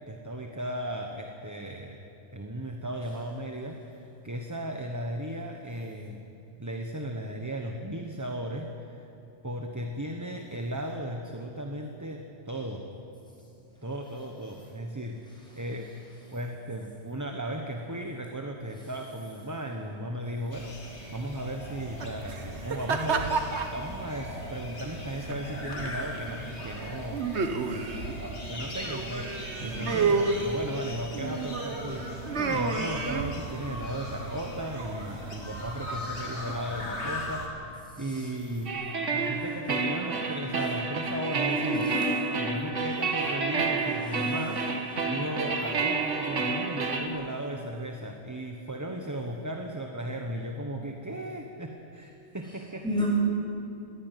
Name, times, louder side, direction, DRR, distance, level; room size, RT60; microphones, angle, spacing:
voice 1, 0.1-2.0 2.3-6.2 6.6-8.7 8.9-9.1 9.4-12.8 13.8-15.2 15.5-15.9 16.3-23.4 23.7-27.3 27.5-27.8 28.2-41.8 42.3-44.7 45.1-52.8, right 1 dB, 15° right, 3 dB, 1.1 m, -36 dB
sound 1, 20.5-37.5, left 1 dB, 65° left, 3.0 m, -40 dB
sound 2, 21.6-37.2, right 4 dB, 65° right, 1.6 m, -33 dB
voice 2, 37.9-38.3 41.7-41.8 42.3-42.4 42.7-43.0 52.8-53.1, left 2 dB, 5° left, -5 dB, 7.3 m, -32 dB
sound 3, 38.7-47.1, right 4 dB, 90° right, 2.0 m, -30 dB
21.0 x 15.5 x 9.2 m, 2.8 s
omnidirectional pair, 1.2 m